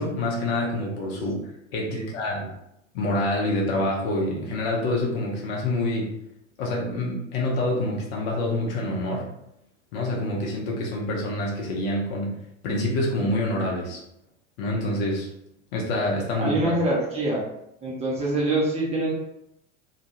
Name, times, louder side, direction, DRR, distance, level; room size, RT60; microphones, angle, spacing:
voice 1, 0.0-1.4 1.7-2.5 2.9-6.1 6.6-9.3 9.9-14.0 14.6-15.3 15.7-16.8, left 1 dB, 45° left, -2 dB, 0.7 m, -27 dB
voice 2, 16.4-17.4 17.8-19.1, right 2 dB, 15° right, -5 dB, 0.6 m, -25 dB
2.2 x 2.2 x 2.9 m, 0.80 s
figure-of-eight pair, 80°, 40 cm